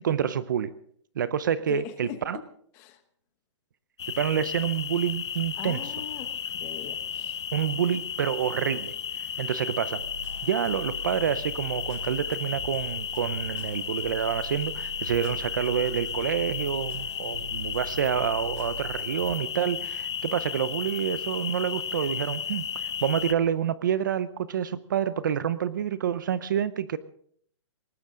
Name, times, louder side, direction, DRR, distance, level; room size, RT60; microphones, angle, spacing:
voice 1, 0.0-0.8 1.2-2.4 4.1-5.9 7.5-10.0 10.4-27.0, right 9 dB, 40° right, 16 dB, 0.6 m, -28 dB
voice 2, 1.7-2.2 2.7-3.0 5.6-6.3 6.5-7.4, left 10 dB, 15° left, 9 dB, 1.0 m, -40 dB
sound 1, 4.0-23.3, left 8 dB, 60° left, 1.0 m, -34 dB
sound 2, 10.0-19.3, right 2 dB, 75° right, 4.2 m, -42 dB
19.0 x 19.0 x 3.8 m, 0.62 s
hypercardioid pair, 175°, 16 cm